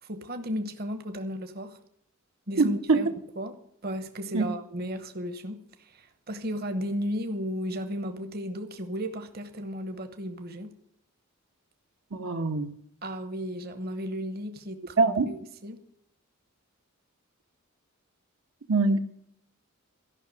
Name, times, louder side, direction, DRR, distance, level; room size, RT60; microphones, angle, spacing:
voice 1, 0.0-1.8 2.5-3.1 3.4-3.6 3.8-10.8 13.0-15.8, equal, 45° right, 1.0 m, -34 dB
voice 2, 2.6-3.0 4.3-4.4 12.1-12.7 15.0-15.3 18.7-19.0, right 3 dB, 70° right, 1.0 m, -23 dB
13.5 x 5.9 x 9.3 m
head